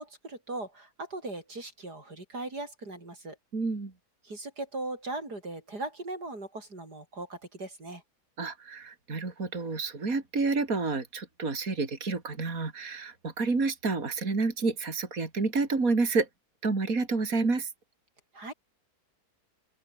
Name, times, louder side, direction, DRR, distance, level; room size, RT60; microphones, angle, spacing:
voice 1, 0.0-3.4 4.2-8.0 18.3-18.5, right 2 dB, 85° right, 7.2 m, -39 dB
voice 2, 3.5-3.9 8.4-16.3 16.6-17.7, right 3 dB, 60° right, 3.7 m, -29 dB
open air
omnidirectional pair, 1.7 m